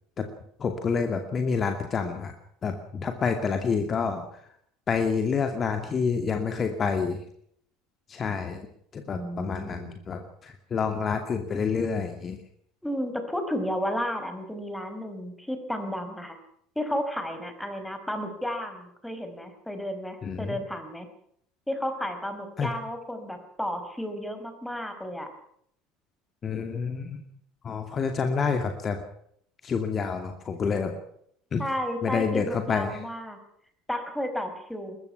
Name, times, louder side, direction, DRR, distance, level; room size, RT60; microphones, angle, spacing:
voice 1, 0.6-2.3 2.6-4.4 4.9-7.2 8.1-8.7 8.9-12.4 20.2-20.6 22.6-22.7 26.4-27.2 27.6-29.0 29.6-30.9 31.5-31.6 32.0-33.0, left 5 dB, 30° left, 6 dB, 2.5 m, -28 dB
voice 2, 9.1-10.0 12.8-16.4 16.8-21.1 21.7-25.3 31.6-33.4 33.9-35.0, equal, 5° left, 8 dB, 5.3 m, -32 dB
23.0 x 21.0 x 6.0 m, 0.67 s
figure-of-eight pair, 65°, 0 cm